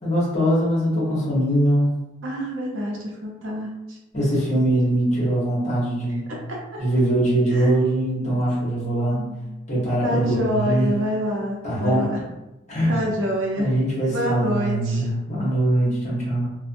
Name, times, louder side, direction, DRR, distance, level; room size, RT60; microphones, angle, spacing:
voice 1, 0.0-1.9 4.1-6.3 6.8-9.2 9.7-10.9 11.6-12.1 12.7-13.0 13.6-16.5, right 1 dB, 35° left, -6 dB, 1.0 m, -22 dB
voice 2, 2.2-4.0 6.3-6.8 7.5-7.7 9.1-9.4 10.0-12.2 12.9-13.7 14.1-15.1, equal, 70° right, -2 dB, 0.6 m, -27 dB
2.5 x 2.1 x 2.5 m, 1.0 s
head